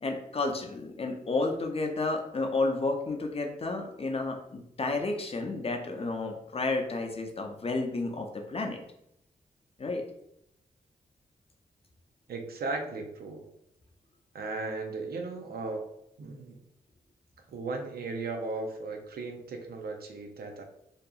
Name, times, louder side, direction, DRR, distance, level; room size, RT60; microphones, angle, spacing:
voice 1, 0.0-8.8 9.8-10.0, left 3 dB, 40° left, 3 dB, 0.5 m, -31 dB
voice 2, 12.3-13.5 14.3-15.8 16.2-16.6 17.5-20.6, right 3 dB, 75° right, 4 dB, 0.5 m, -36 dB
2.7 x 2.5 x 2.3 m, 0.76 s
cardioid pair, 60°, 16 cm